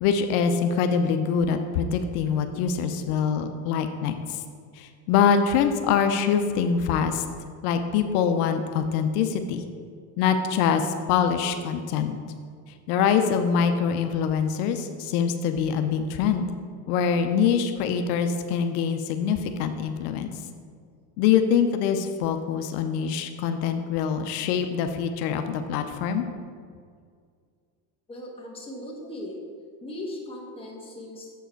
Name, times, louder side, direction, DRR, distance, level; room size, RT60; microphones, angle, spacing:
voice 1, 0.0-4.1 4.8-7.2 7.6-9.6 10.2-12.2 12.9-16.4 16.9-20.3 21.2-26.2, left 7 dB, 85° left, 7 dB, 0.7 m, -24 dB
voice 2, 28.1-29.4 29.8-31.3, left 1 dB, 10° left, -2 dB, 1.2 m, -38 dB
7.2 x 4.6 x 4.5 m, 2.1 s
cardioid pair, 135°, 44 cm